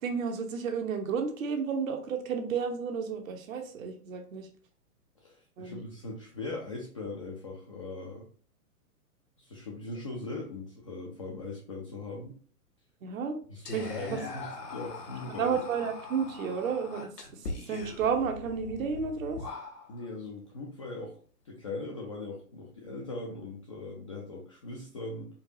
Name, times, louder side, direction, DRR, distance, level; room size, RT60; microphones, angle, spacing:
voice 1, 0.0-4.5 5.6-5.8 13.0-13.4 13.7-14.2 15.3-19.4, right 6 dB, 60° right, 5 dB, 0.9 m, -32 dB
voice 2, 5.2-8.3 9.4-12.4 13.5-15.6 19.9-21.2 21.4-25.3, left 2 dB, 25° left, -3 dB, 0.3 m, -40 dB
Whispering, 13.7-20.1, left 3 dB, 90° left, 1.0 m, -41 dB
4.4 x 2.3 x 2.7 m, 0.43 s
hypercardioid pair, 120°, 46 cm